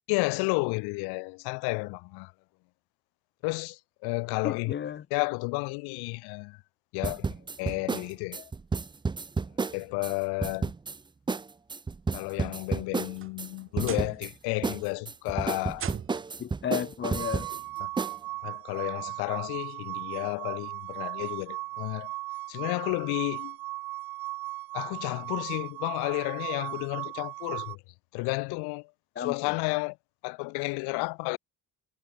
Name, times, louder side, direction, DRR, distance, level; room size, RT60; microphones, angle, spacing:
voice 1, 0.1-2.3 3.4-4.7 5.1-6.6 6.9-7.3 7.6-8.5 9.7-10.7 12.1-15.9 17.8-17.9 18.4-22.1 22.5-23.6 24.7-27.8 28.1-28.9 29.2-30.0 30.2-31.4, left 29 dB, 90° left, 1.0 m, -32 dB
voice 2, 4.4-5.0 16.4-17.5 29.2-29.5, left 8 dB, 30° left, 0.9 m, -33 dB
sound 1, 7.0-10.1 10.4-11.0 11.3-11.4 11.7-13.5 13.8-14.3 14.6-17.6 18.0-18.2, right 4 dB, 10° right, 0.6 m, -31 dB
sound 2, 12.7-14.3 14.6-15.1 15.7-16.4 17.6-17.7 18.3-18.4 20.0-20.1, right 9 dB, 35° right, 1.2 m, -41 dB
sound 3, 17.0-27.8, right 18 dB, 65° right, 1.2 m, -37 dB
cardioid pair, 120°, 38 cm